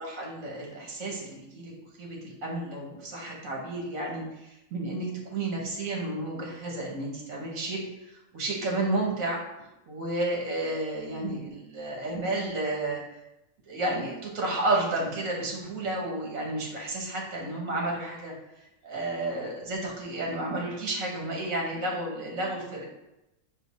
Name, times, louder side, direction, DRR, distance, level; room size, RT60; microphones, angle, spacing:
voice 1, 0.0-1.7 2.0-9.4 9.9-13.0 13.7-18.3 18.8-22.8, right 2 dB, 75° right, -1 dB, 1.4 m, -31 dB
5.0 x 2.1 x 4.1 m, 0.94 s
omnidirectional pair, 1.4 m